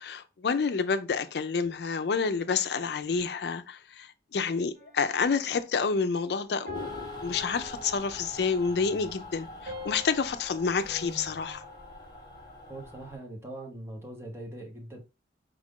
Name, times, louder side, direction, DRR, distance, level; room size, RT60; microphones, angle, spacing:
voice 1, 0.0-11.6, left 5 dB, 65° left, 0.4 m, -29 dB
sound 1, 4.7-5.4 6.7-8.5 9.7-12.1, left 3 dB, 45° right, 2.4 m, -45 dB
Mechanical fan, 6.7-13.2, left 1 dB, 25° left, 1.1 m, -44 dB
voice 2, 12.7-15.0, right 1 dB, 15° right, 0.9 m, -41 dB
4.8 x 2.5 x 3.6 m
head